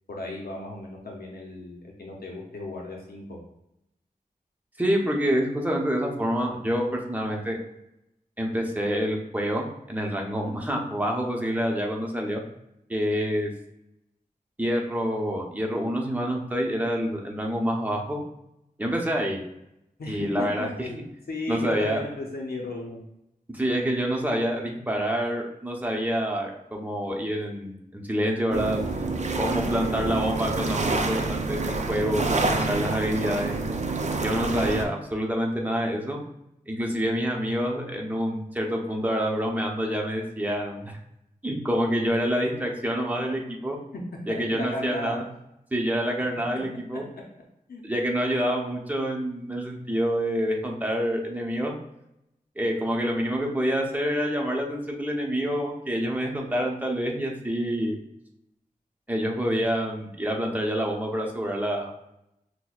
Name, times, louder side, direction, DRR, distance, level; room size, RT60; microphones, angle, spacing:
voice 1, 0.1-3.4 20.0-21.0 21.3-23.1 43.9-44.0 44.3-45.2 47.7-47.8, left 2 dB, 85° left, -1 dB, 0.7 m, -35 dB
voice 2, 4.8-7.6 8.4-12.4 12.9-13.5 14.6-18.2 18.8-19.4 20.1-20.9 21.5-22.0 23.5-28.8 29.3-33.6 34.2-36.2 36.7-41.0 41.4-43.8 44.3-45.2 45.7-47.0 47.8-51.7 52.6-58.0 59.1-62.1, equal, 10° right, 0 dB, 0.7 m, -27 dB
sound 1, 28.5-34.8, right 3 dB, 50° right, 0.4 m, -27 dB
5.8 x 2.1 x 2.4 m, 0.84 s
wide cardioid pair, 65°, 15 cm